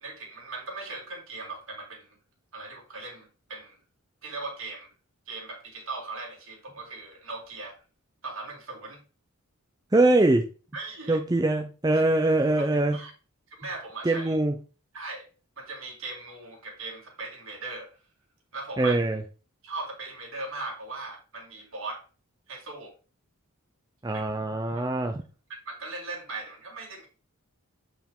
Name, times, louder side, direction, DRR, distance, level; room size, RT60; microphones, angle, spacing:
voice 1, 0.0-2.2 2.5-3.8 4.2-4.9 5.3-7.8 8.2-9.0 10.7-11.2 12.6-12.7 12.9-13.1 13.6-14.4 14.9-15.3 15.6-18.0 18.5-19.0 19.6-22.0 22.5-22.9 24.1-24.2 24.7-24.8 25.7-27.1, right 3 dB, 60° right, 0 dB, 2.3 m, -39 dB
voice 2, 9.9-10.5 11.1-13.0 14.0-14.5 18.8-19.2 24.0-25.2, right 2 dB, 15° right, 5 dB, 0.5 m, -23 dB
7.8 x 4.6 x 3.6 m, 0.35 s
head